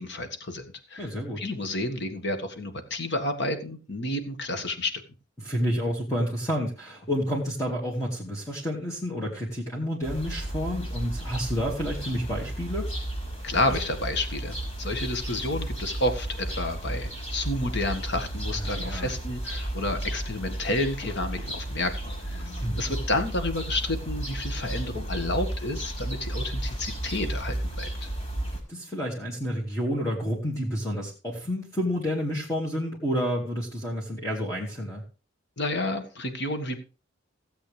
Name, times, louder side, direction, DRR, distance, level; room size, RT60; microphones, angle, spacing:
voice 1, 0.0-1.1 1.4-5.0 13.4-21.9 22.3-28.1 35.6-36.8, left 1 dB, 60° left, 8 dB, 1.7 m, -30 dB
voice 2, 1.0-1.4 5.4-12.9 18.6-19.1 22.6-22.9 28.7-35.0, equal, 15° left, -3 dB, 2.1 m, -30 dB
sound 1, 10.0-28.6, right 1 dB, 35° left, 5.0 m, -33 dB
16.0 x 7.9 x 3.4 m, 0.34 s
head